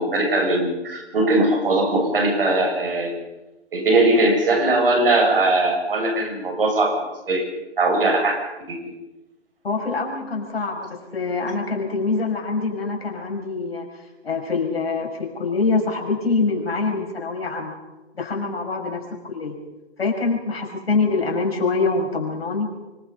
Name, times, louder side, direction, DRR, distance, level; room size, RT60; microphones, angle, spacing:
voice 1, 0.0-3.1 3.7-7.0 7.3-7.4 7.8-8.4 8.7-8.9, right 2 dB, 55° right, 2 dB, 7.3 m, -20 dB
voice 2, 9.6-17.8 18.2-19.6 20.0-22.7, left 4 dB, 60° left, 1 dB, 6.1 m, -25 dB
25.5 x 21.0 x 5.6 m, 1.1 s
figure-of-eight pair, 155°, 34 cm